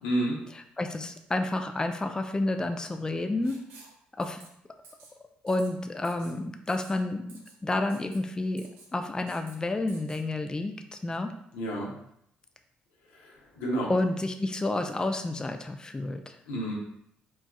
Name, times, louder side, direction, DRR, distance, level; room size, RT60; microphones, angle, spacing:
voice 1, 0.0-0.4 11.5-11.9 13.1-13.9 16.5-16.7, right 1 dB, 90° left, -2 dB, 0.6 m, -30 dB
voice 2, 0.5-3.6 4.2-4.4 5.4-7.3 7.6-11.3 13.9-16.4, left 2 dB, 20° left, 6 dB, 0.3 m, -30 dB
Writing, 3.4-3.9 4.2-4.5 4.8-5.1 5.5-5.7 6.0-6.3 6.7-7.0 7.3-7.5 7.9-8.2 8.6-8.9 9.3-9.5 9.9-10.2, right 4 dB, 75° right, 0.5 m, -52 dB
4.0 x 2.3 x 2.2 m, 0.73 s
hypercardioid pair, 55°, 4 cm